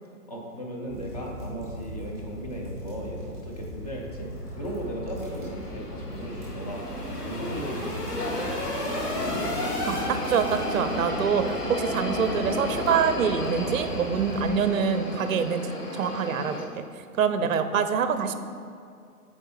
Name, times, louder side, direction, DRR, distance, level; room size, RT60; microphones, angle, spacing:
voice 1, 0.3-6.9 7.1-9.5 17.4-17.5, right 1 dB, 25° left, -1 dB, 0.6 m, -37 dB
sound 1, 0.9-14.5, equal, 5° right, 1.4 m, -40 dB
sound 2, 4.0-16.7, left 1 dB, 85° left, 1.0 m, -33 dB
sound 3, 6.2-11.2, left 1 dB, 45° left, 1.4 m, -35 dB
voice 2, 9.9-16.7 17.2-18.4, right 6 dB, 60° right, 9 dB, 0.5 m, -25 dB
7.7 x 4.3 x 3.0 m, 2.3 s
figure-of-eight pair, 135°, 46 cm